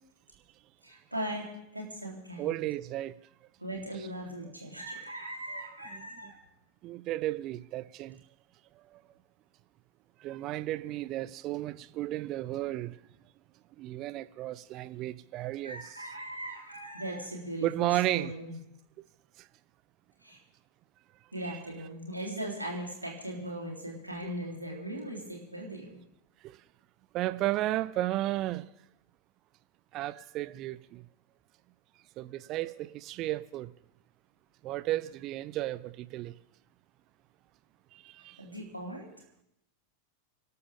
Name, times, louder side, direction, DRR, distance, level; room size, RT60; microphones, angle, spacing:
voice 1, 0.8-2.6 3.6-6.4 15.6-18.6 20.2-20.4 21.3-26.0 38.2-39.1, right 1 dB, 85° right, 3.8 m, -39 dB
voice 2, 2.4-3.1 5.9-6.0 6.8-8.2 8.9-9.0 10.2-13.0 13.8-15.8 17.6-18.3 21.4-21.6 26.4-26.6 27.1-28.6 29.9-31.0 32.2-33.7 34.6-36.3 37.9-38.4, right 15 dB, 35° right, 0.6 m, -33 dB
25.5 x 12.5 x 3.7 m
figure-of-eight pair, 90°, 0 cm